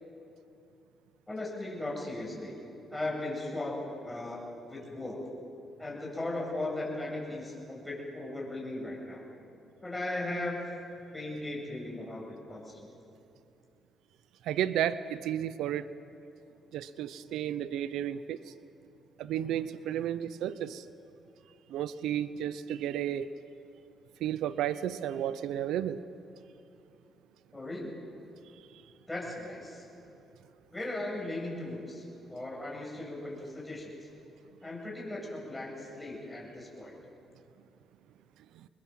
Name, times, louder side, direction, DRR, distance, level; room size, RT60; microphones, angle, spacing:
voice 1, 1.3-2.5 2.9-4.4 4.7-5.2 5.8-9.2 9.8-10.6 11.1-12.9 27.5-27.9 29.1-29.8 30.7-34.1 34.6-36.9, left 2 dB, 10° left, -3 dB, 8.0 m, -37 dB
voice 2, 14.5-15.9 16.7-18.4 19.2-20.8 21.7-23.3 24.2-26.0, right 10 dB, 85° right, 14 dB, 0.7 m, -32 dB
24.5 x 21.0 x 7.6 m, 2.8 s
cardioid pair, 90°, 0 cm